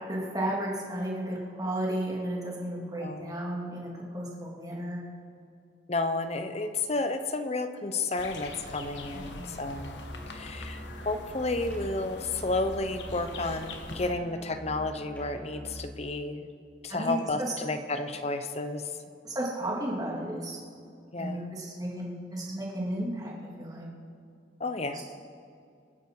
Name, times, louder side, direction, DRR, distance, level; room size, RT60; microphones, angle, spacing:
voice 1, 0.1-5.0 9.1-9.7 16.9-17.5 19.2-20.6 21.2-23.3 23.6-23.9 24.9-25.0, right 1 dB, 20° right, -3 dB, 3.0 m, -33 dB
voice 2, 3.0-3.4 5.9-10.0 10.3-16.5 16.8-18.8 21.1-21.5 24.6-25.0, left 2 dB, 35° left, 9 dB, 0.9 m, -32 dB
sound 1, 8.2-14.1, left 2 dB, 85° left, 1.5 m, -43 dB
Musical instrument, 9.6-15.9, equal, 10° left, 4.5 m, -44 dB
25.5 x 10.0 x 4.8 m, 2.4 s
head